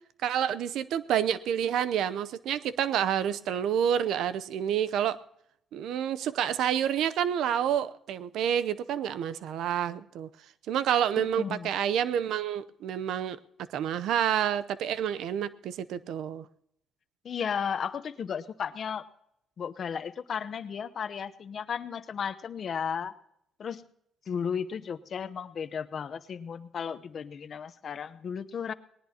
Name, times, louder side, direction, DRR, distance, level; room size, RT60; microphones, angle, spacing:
voice 1, 0.2-5.2 5.7-10.3 10.7-13.4 13.7-16.5, right 9 dB, 80° right, 14 dB, 0.7 m, -28 dB
voice 2, 11.2-11.7 17.2-19.0 19.6-23.1 23.6-23.9 24.3-28.7, left 7 dB, 55° left, 13 dB, 0.8 m, -34 dB
19.5 x 19.0 x 2.9 m, 0.76 s
cardioid pair, 90°, 0 cm